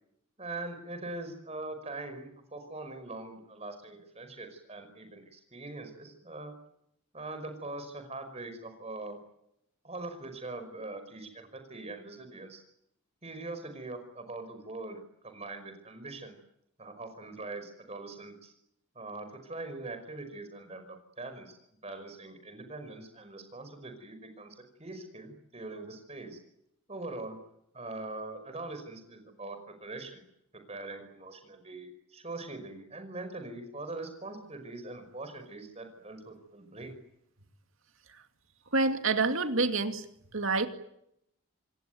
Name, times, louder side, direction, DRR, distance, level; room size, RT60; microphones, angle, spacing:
voice 1, 0.4-6.5 7.1-9.2 9.8-12.6 13.2-16.4 16.8-18.5 19.0-21.6 21.8-26.4 26.9-27.4 27.7-30.2 30.5-37.0, right 2 dB, 30° right, 8 dB, 5.3 m, -42 dB
voice 2, 38.7-40.1 40.3-40.7, right 3 dB, 65° right, 7 dB, 2.4 m, -27 dB
27.0 x 21.5 x 9.5 m, 0.78 s
head